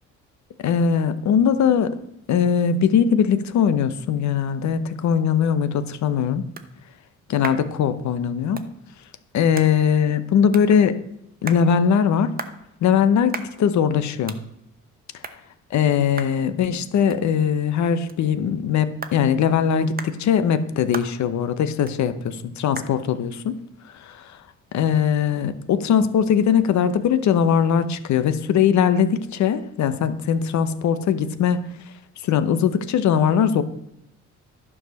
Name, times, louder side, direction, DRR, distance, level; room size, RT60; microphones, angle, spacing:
voice 1, 0.6-2.0 2.3-6.4 7.3-8.6 9.3-11.0 11.4-12.3 12.8-14.4 15.7-23.6 23.8-24.4 24.7-31.8 32.2-33.6, left 7 dB, 65° left, 12 dB, 0.8 m, -20 dB
sound 1, 5.7-25.0, right 4 dB, 30° right, 0.9 m, -42 dB
11.0 x 4.9 x 6.3 m, 0.78 s
cardioid pair, 90°, 30 cm